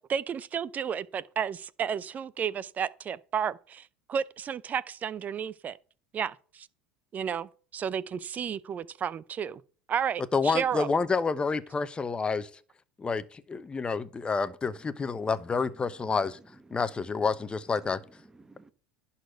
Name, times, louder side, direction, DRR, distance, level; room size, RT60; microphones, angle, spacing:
voice 1, 0.1-5.8 6.1-6.7 7.1-9.6 9.9-10.9, right 7 dB, 35° right, 0.7 m, -32 dB
voice 2, 10.3-12.5 13.0-16.4 16.7-18.0, left 4 dB, 20° left, 1.0 m, -29 dB
voice 3, 14.6-17.2 17.8-18.7, right 2 dB, 10° right, 1.2 m, -55 dB
11.0 x 4.3 x 8.0 m
hypercardioid pair, 85°, 5 cm